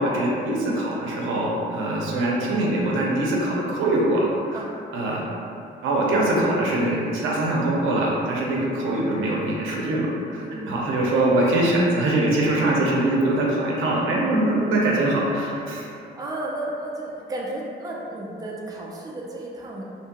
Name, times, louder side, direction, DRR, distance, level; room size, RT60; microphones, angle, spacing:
voice 1, 0.0-4.3 4.5-4.6 4.9-5.2 5.8-15.9, right 1 dB, 85° right, -4 dB, 0.6 m, -23 dB
voice 2, 10.4-10.9 16.0-19.8, right 1 dB, 20° right, -3 dB, 0.4 m, -33 dB
2.8 x 2.2 x 2.8 m, 2.6 s
cardioid pair, 90°, 20 cm